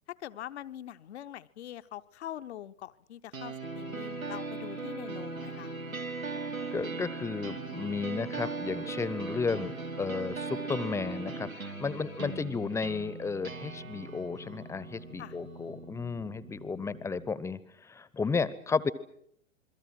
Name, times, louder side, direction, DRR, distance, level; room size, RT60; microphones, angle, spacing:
voice 1, 0.1-5.7 15.2-15.4, left 11 dB, 55° left, 12 dB, 0.9 m, -43 dB
sound 1, 3.3-17.3, right 4 dB, 85° right, 1.4 m, -39 dB
sound 2, 3.6-12.4, left 4 dB, 70° left, 1.4 m, -51 dB
voice 2, 6.7-9.7 10.0-18.9, left 4 dB, 5° left, 18 dB, 0.8 m, -33 dB
28.0 x 22.5 x 6.2 m, 0.72 s
figure-of-eight pair, 105°, 40 cm